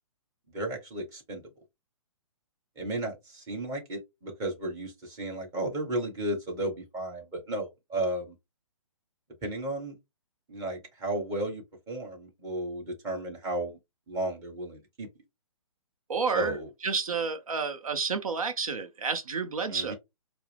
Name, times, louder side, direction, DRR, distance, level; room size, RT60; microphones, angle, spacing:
voice 1, 0.5-1.4 2.7-8.3 9.4-10.0 10.5-13.8 14.1-15.1 16.3-16.7 19.7-19.9, right 1 dB, 20° right, 1.5 m, -34 dB
voice 2, 16.1-19.9, right 5 dB, 80° right, 0.7 m, -30 dB
4.5 x 2.1 x 3.3 m
hypercardioid pair, 140°, 18 cm